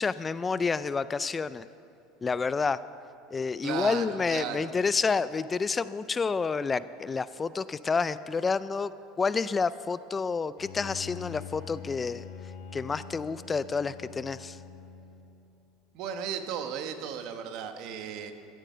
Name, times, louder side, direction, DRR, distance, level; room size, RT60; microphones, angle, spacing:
voice 1, 0.0-1.6 2.2-2.8 3.3-8.9 9.2-12.2 12.7-14.6, left 5 dB, 20° left, 16 dB, 0.3 m, -29 dB
voice 2, 3.6-4.7 15.9-18.3, right 8 dB, 60° right, 7 dB, 1.2 m, -35 dB
Bowed string instrument, 10.6-15.5, left 8 dB, 65° left, 1.9 m, -44 dB
13.0 x 13.0 x 5.6 m, 2.9 s
supercardioid pair, 120°, 0 cm